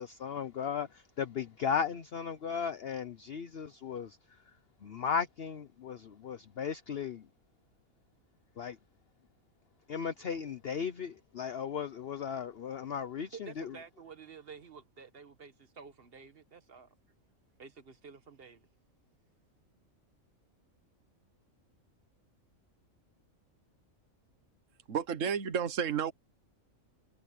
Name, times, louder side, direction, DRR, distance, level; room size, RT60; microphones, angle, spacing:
voice 1, 0.0-4.4 4.8-7.3 8.6-8.8 9.9-13.8, left 7 dB, 50° left, 1.0 m, -36 dB
voice 2, 13.3-16.9 17.6-18.7, right 5 dB, 45° right, 1.4 m, -51 dB
voice 3, 24.9-26.1, right 7 dB, 70° right, 1.5 m, -31 dB
omnidirectional pair, 1.4 m